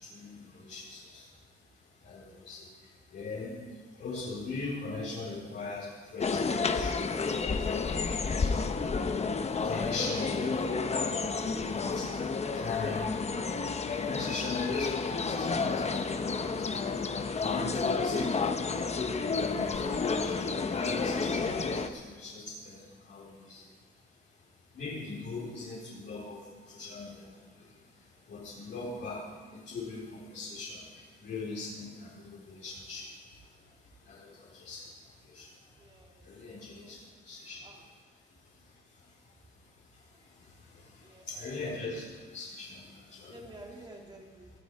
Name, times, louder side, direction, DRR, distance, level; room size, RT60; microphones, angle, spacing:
voice 1, 0.1-1.3 2.0-2.7 3.1-3.6 4.0-7.3 7.6-8.0 8.4-8.9 9.4-10.6 11.2-12.2 12.5-13.2 13.9-16.8 17.3-18.4 19.2-20.4 20.7-22.8 23.1-23.6 24.7-26.4 26.7-27.2 27.6-27.7 28.3-29.2 29.5-33.1 34.1-34.8 35.3-35.5 36.3-37.0 37.3-37.6 41.3-42.0 42.3-42.8 43.1-43.4, left 3 dB, 60° left, -7 dB, 4.2 m, -40 dB
sound 1, 6.2-21.9, left 4 dB, 35° left, 1.0 m, -31 dB
voice 2, 35.8-36.2 36.6-37.0 37.6-37.8 41.0-42.0 43.3-44.5, right 1 dB, 20° right, -1 dB, 3.3 m, -51 dB
19.0 x 13.0 x 4.9 m, 1.5 s
cardioid pair, 90°, 20 cm